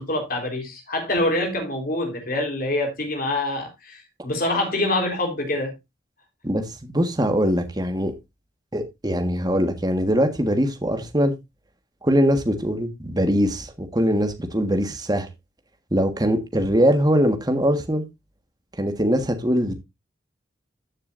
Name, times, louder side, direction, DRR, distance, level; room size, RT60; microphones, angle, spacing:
voice 1, 0.0-5.7, left 1 dB, 50° left, 4.0 m, -25 dB
voice 2, 6.4-8.1 8.7-11.3 12.0-15.3 15.9-18.0 18.8-19.7, equal, 20° right, 1.6 m, -22 dB
14.0 x 6.8 x 2.6 m
head